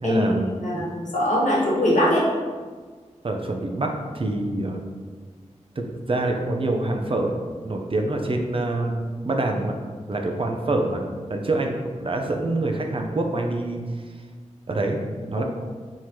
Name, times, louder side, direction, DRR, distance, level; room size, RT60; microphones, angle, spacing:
voice 1, 0.0-0.5 3.2-4.8 5.8-8.9 9.2-9.7 10.1-11.0 11.3-13.8 14.7-15.0 15.3-15.4, right 2 dB, 45° right, 2 dB, 0.6 m, -26 dB
voice 2, 0.6-2.3 15.4-15.5, left 1 dB, 85° left, -5 dB, 1.1 m, -21 dB
4.4 x 3.7 x 3.1 m, 1.5 s
wide cardioid pair, 85°, 12 cm